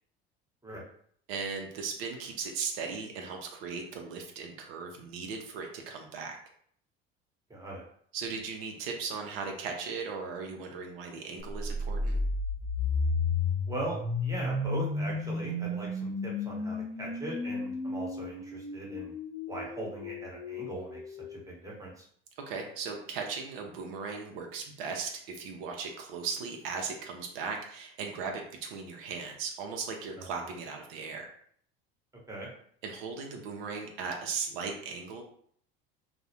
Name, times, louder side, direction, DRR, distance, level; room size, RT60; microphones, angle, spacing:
voice 1, 1.3-6.4 8.1-12.2 22.5-31.3 32.8-35.2, right 5 dB, 75° right, 3 dB, 0.5 m, -37 dB
voice 2, 7.5-7.8 13.7-19.1 19.5-22.1 30.2-30.3 32.3-32.5, right 1 dB, 10° right, -3 dB, 0.9 m, -40 dB
sound 1, 11.5-21.4, left 3 dB, 30° left, 0.8 m, -33 dB
2.3 x 2.1 x 2.8 m, 0.62 s
hypercardioid pair, 80°, 30 cm